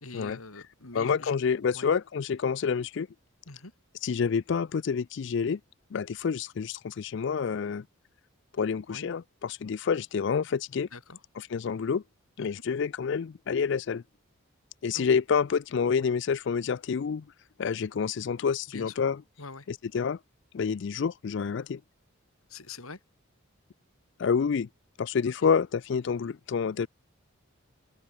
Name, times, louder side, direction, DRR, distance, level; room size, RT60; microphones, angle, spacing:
voice 1, 0.0-1.4 1.7-1.9 3.5-3.7 8.9-9.1 10.9-11.2 12.4-12.5 14.9-15.1 16.0-16.1 18.7-19.0 19.4-19.7 22.5-23.0 25.4-25.5, left 3 dB, 80° left, 2.9 m, -44 dB
voice 2, 0.9-3.1 4.0-5.6 5.9-7.9 8.5-10.9 11.5-12.0 12.4-14.0 14.8-17.3 17.6-19.2 19.7-20.2 20.5-21.8 24.2-24.7 25.0-26.9, left 6 dB, 55° left, 0.4 m, -28 dB
head